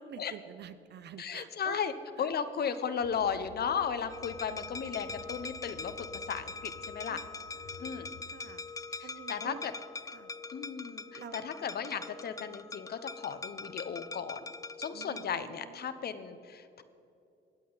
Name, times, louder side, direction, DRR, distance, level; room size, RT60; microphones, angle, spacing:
voice 1, 0.0-1.9 7.1-8.6 9.0-9.7 10.1-10.3 11.1-11.4 14.9-16.0, right 8 dB, 60° right, 12 dB, 0.5 m, -49 dB
voice 2, 1.2-1.9 2.2-7.2 7.8-8.1 9.0-9.7 10.5-14.4 14.8-16.8, left 7 dB, 55° left, 12 dB, 0.9 m, -35 dB
sound 1, 3.0-8.3, left 6 dB, 75° left, 1.2 m, -54 dB
sound 2, 4.1-15.3, left 4 dB, 15° left, 0.4 m, -43 dB
20.5 x 8.5 x 4.0 m, 2.8 s
cardioid pair, 90°, 20 cm